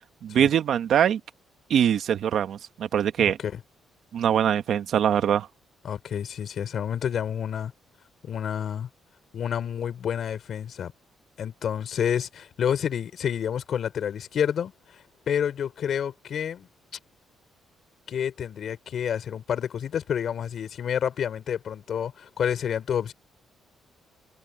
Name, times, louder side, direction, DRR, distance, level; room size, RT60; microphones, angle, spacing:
voice 1, 0.2-1.2 1.7-3.4 4.1-5.5, right 9 dB, 65° right, 1.5 m, -23 dB
voice 2, 5.8-7.7 8.2-8.9 9.3-10.9 11.4-16.7 18.1-23.1, left 8 dB, 60° left, 5.5 m, -29 dB
cardioid pair, 110°, 0 cm